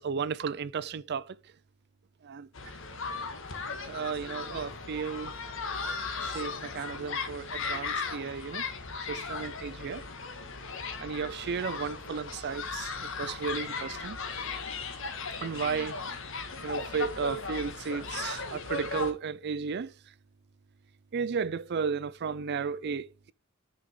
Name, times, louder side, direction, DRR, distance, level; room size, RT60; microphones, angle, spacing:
voice 1, 0.0-1.4 2.2-2.5 3.9-5.3 6.2-8.6 9.1-10.1 11.0-14.2 15.4-16.1 16.6-19.9 21.1-23.3, right 6 dB, 50° right, 0.4 m, -34 dB
sound 1, 2.5-19.1, left 4 dB, 65° left, 1.5 m, -37 dB
9.4 x 5.8 x 3.6 m
head